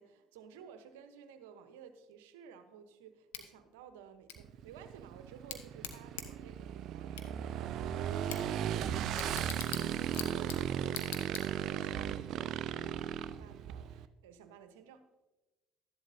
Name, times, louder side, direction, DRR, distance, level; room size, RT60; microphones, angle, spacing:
voice 1, 0.0-15.1, right 8 dB, 85° right, 9 dB, 0.9 m, -55 dB
Bicycle / Tick, 3.3-11.9, left 9 dB, 85° left, 1.1 m, -47 dB
Motorcycle / Engine, 4.4-14.0, right 9 dB, 60° right, 0.5 m, -36 dB
13.0 x 11.0 x 2.7 m, 1.1 s
hypercardioid pair, 60°, 0 cm